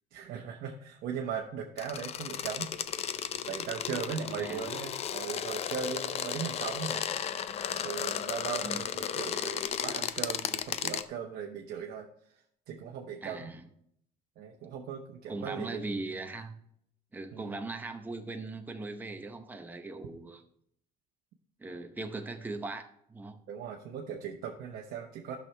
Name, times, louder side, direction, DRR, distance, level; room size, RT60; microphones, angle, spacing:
voice 1, 0.1-7.1 7.8-12.1 12.7-13.5 14.4-15.8 17.3-17.5 23.5-25.4, right 7 dB, 60° right, 1 dB, 1.0 m, -38 dB
sound 1, 1.8-11.0, left 9 dB, 35° left, 0.5 m, -34 dB
voice 2, 4.3-4.7 8.6-8.8 13.2-13.6 15.3-16.6 17.1-20.4 21.6-23.4, right 3 dB, 10° right, 5 dB, 0.8 m, -39 dB
12.0 x 6.3 x 3.3 m, 0.70 s
cardioid pair, 140°, 18 cm